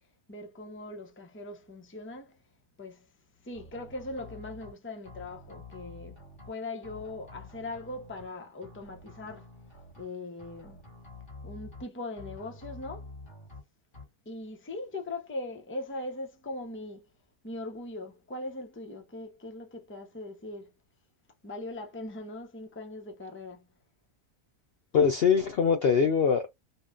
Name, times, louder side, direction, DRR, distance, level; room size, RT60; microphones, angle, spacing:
voice 1, 0.3-2.4 2.8-3.1 3.4-9.5 10.0-10.8 11.4-13.1 14.3-17.0 17.4-20.7 21.4-23.7, left 2 dB, 10° left, 0.6 m, -40 dB
sound 1, 3.5-4.7 5.1-6.5 6.8-8.3 8.6-10.0 10.4-11.8 12.2-13.6 13.9-14.0, left 3 dB, 35° left, 1.9 m, -48 dB
voice 2, 24.9-26.6, left 6 dB, 60° left, 0.6 m, -23 dB
3.7 x 2.3 x 3.8 m
omnidirectional pair, 1.5 m